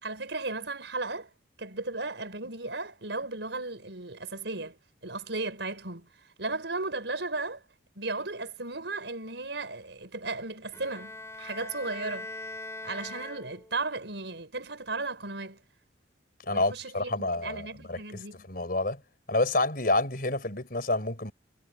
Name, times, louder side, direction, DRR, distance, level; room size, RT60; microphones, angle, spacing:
voice 1, 0.0-1.3 1.6-6.1 6.4-7.6 8.0-12.3 12.8-15.6 16.5-18.5, right 3 dB, 80° right, 4.5 m, -35 dB
Bowed string instrument, 10.7-13.9, left 2 dB, 15° left, 5.1 m, -41 dB
voice 2, 16.4-18.2 18.5-19.0 19.3-21.3, left 2 dB, 55° left, 4.9 m, -28 dB
head